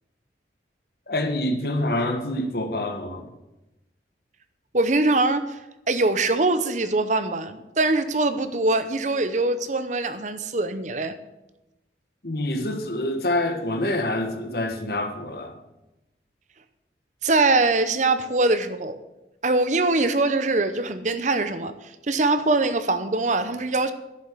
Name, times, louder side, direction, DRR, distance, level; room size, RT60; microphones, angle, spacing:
voice 1, 1.1-3.3 12.2-15.6, left 1 dB, 60° left, 6 dB, 1.5 m, -26 dB
voice 2, 4.7-5.6 5.9-11.1 17.2-19.0 19.4-23.9, right 2 dB, 45° right, 11 dB, 0.8 m, -23 dB
11.0 x 7.0 x 8.1 m, 0.98 s
head